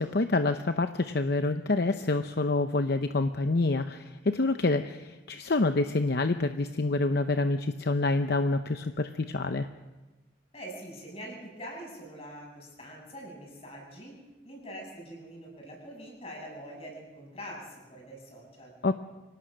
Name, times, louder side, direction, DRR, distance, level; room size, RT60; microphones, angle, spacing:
voice 1, 0.0-9.7 18.8-18.9, left 3 dB, 60° left, 8 dB, 0.7 m, -27 dB
voice 2, 10.5-14.2 14.4-18.7, equal, 35° left, 0 dB, 7.4 m, -44 dB
25.0 x 18.0 x 6.4 m, 1.1 s
head